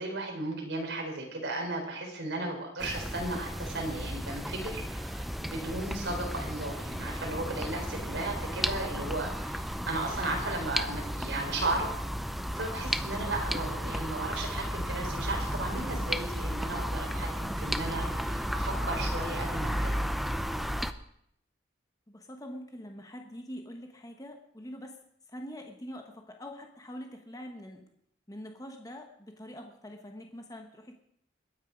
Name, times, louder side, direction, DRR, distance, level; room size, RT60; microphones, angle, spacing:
voice 1, 0.0-11.9 12.5-20.1, right 2 dB, 70° right, 2 dB, 4.0 m, -35 dB
sound 1, 2.8-20.9, equal, ahead, 0.5 m, -33 dB
voice 2, 22.1-25.0 25.3-27.9 28.3-30.9, equal, 20° left, 4 dB, 1.2 m, -44 dB
21.5 x 9.4 x 5.2 m, 0.73 s
head